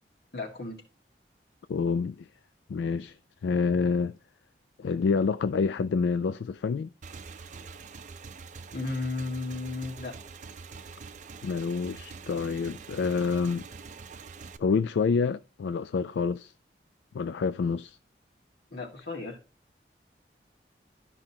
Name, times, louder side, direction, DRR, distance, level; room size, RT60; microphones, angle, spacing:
voice 1, 0.3-0.8 8.7-10.2 18.7-19.4, left 3 dB, 65° left, 1.9 m, -34 dB
voice 2, 1.7-2.3 2.7-3.2 3.4-4.2 4.8-6.9 11.4-13.7 14.6-16.5 17.1-18.0, left 5 dB, 80° left, 0.3 m, -27 dB
Motorcycle / Engine, 7.0-14.6, right 4 dB, 45° right, 0.5 m, -45 dB
12.5 x 5.4 x 2.9 m
head